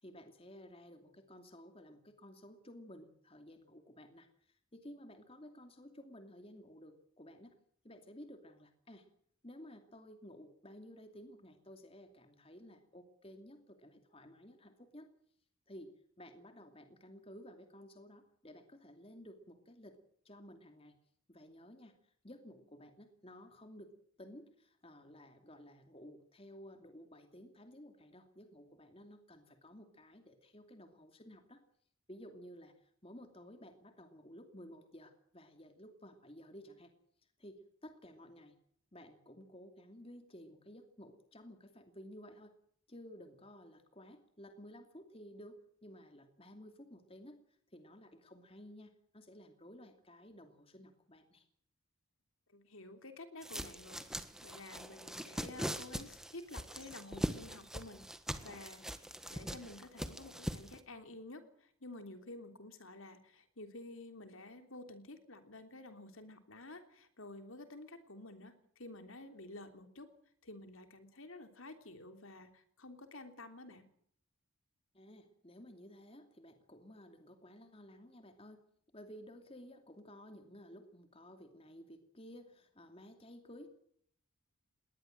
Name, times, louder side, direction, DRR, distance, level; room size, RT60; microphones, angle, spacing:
voice 1, 0.0-7.5 7.8-9.1 9.4-15.1 15.7-15.9 16.2-20.0 20.2-21.0 21.3-22.0 22.2-31.6 32.1-36.9 37.4-38.5 38.9-42.6 42.9-51.5 74.9-78.6 78.9-83.7, equal, 25° left, 7 dB, 2.6 m, -54 dB
voice 2, 52.5-54.0 54.4-58.0 58.4-70.1 70.4-73.8, left 2 dB, 65° left, 8 dB, 3.3 m, -51 dB
sound 1, 53.4-60.8, equal, ahead, 1.4 m, -42 dB
21.0 x 19.0 x 7.8 m, 0.64 s
head